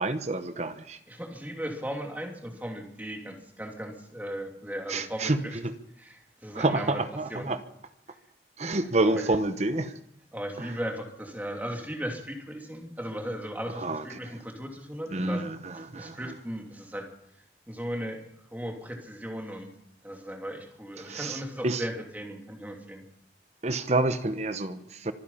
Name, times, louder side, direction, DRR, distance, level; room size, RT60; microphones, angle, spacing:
voice 1, 0.0-1.0 4.9-5.7 6.5-7.6 8.6-9.9 10.6-10.7 13.7-14.0 14.3-14.4 15.1-16.3 21.0-21.8 23.6-25.1, right 2 dB, 40° right, 1.0 m, -28 dB
voice 2, 1.1-5.5 6.0-7.0 7.3-7.5 9.2-9.3 10.3-15.4 15.9-17.1 17.7-19.7 20.0-23.0, equal, 10° right, 2.9 m, -37 dB
25.0 x 10.0 x 5.7 m
head